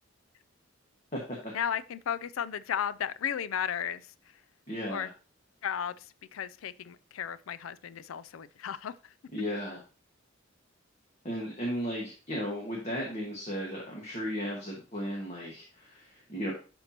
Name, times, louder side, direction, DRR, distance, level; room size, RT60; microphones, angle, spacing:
voice 1, 1.5-4.0 4.9-5.1 5.6-6.0 6.3-8.9, left 8 dB, 85° left, 0.4 m, -34 dB
voice 2, 4.7-5.1 9.3-9.8 11.2-16.5, equal, 35° left, 1.6 m, -35 dB
11.5 x 4.6 x 2.9 m
head